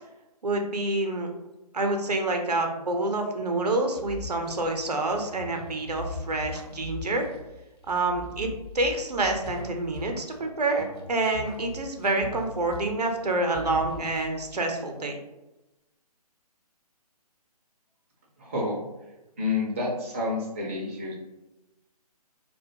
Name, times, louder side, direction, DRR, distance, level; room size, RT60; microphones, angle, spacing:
voice 1, 0.4-1.3 1.7-7.3 7.9-8.5 8.7-15.2, right 2 dB, 80° right, 4 dB, 0.5 m, -27 dB
sound 1, 3.9-10.5 10.8-13.3 13.5-14.6, left 2 dB, 40° left, 0.5 m, -41 dB
voice 2, 18.4-18.8 19.4-21.1, left 3 dB, 20° right, -3 dB, 0.3 m, -29 dB
2.3 x 2.1 x 2.6 m, 1.0 s
figure-of-eight pair, 140°, 20 cm